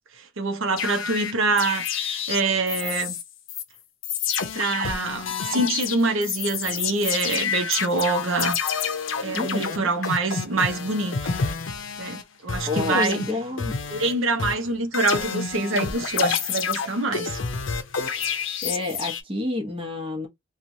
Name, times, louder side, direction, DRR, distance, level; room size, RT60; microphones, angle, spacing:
voice 1, 0.4-3.2 4.5-8.6 9.2-11.3 12.0-13.2 13.9-17.4, right 3 dB, 75° right, 0.7 m, -25 dB
sound 1, 0.8-3.2 3.5-3.6 4.0-12.2 12.5-14.1 14.4-19.2, left 6 dB, 70° left, 0.6 m, -29 dB
voice 2, 9.3-9.9 12.7-13.7 18.6-20.3, left 2 dB, 25° right, 0.9 m, -29 dB
3.0 x 2.3 x 2.6 m
head